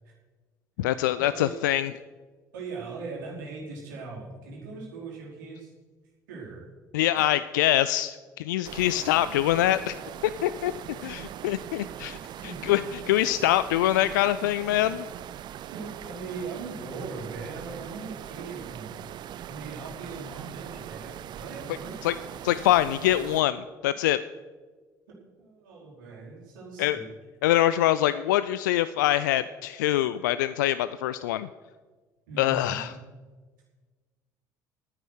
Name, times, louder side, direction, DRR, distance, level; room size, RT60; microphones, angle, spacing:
voice 1, 0.8-1.9 6.9-10.0 10.4-10.7 11.0-12.2 12.4-15.1 22.0-22.1 22.4-24.2 26.8-27.0 27.4-31.5 32.4-32.9, left 13 dB, 70° left, 15 dB, 0.4 m, -24 dB
voice 2, 2.5-5.7 6.3-6.6 12.4-12.7 15.7-19.2 19.4-22.2 25.1-27.0 32.3-33.0, right 4 dB, 75° right, -4 dB, 4.7 m, -40 dB
sound 1, 8.6-23.4, right 11 dB, 45° right, 0.5 m, -41 dB
13.0 x 9.4 x 6.5 m, 1.4 s
figure-of-eight pair, 60°, 10 cm